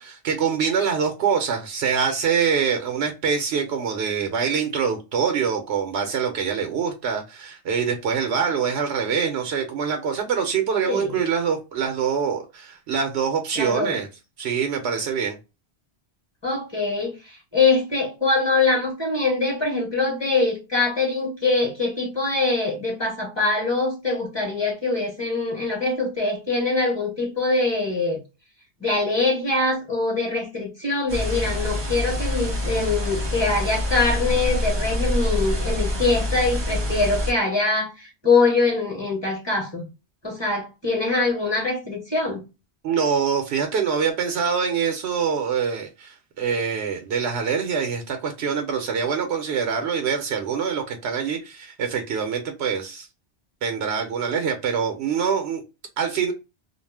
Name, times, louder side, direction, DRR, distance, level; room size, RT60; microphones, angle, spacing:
voice 1, 0.0-14.1 14.4-15.4 42.8-53.1 53.6-55.6 56.0-56.3, right 6 dB, 75° right, 0.8 m, -24 dB
voice 2, 13.6-14.0 16.4-17.1 17.5-28.2 28.8-39.8 40.2-42.4, left 3 dB, 25° left, 1.0 m, -23 dB
sound 1, 31.1-37.3, left 1 dB, 30° right, 0.5 m, -26 dB
2.3 x 2.0 x 3.2 m
omnidirectional pair, 1.1 m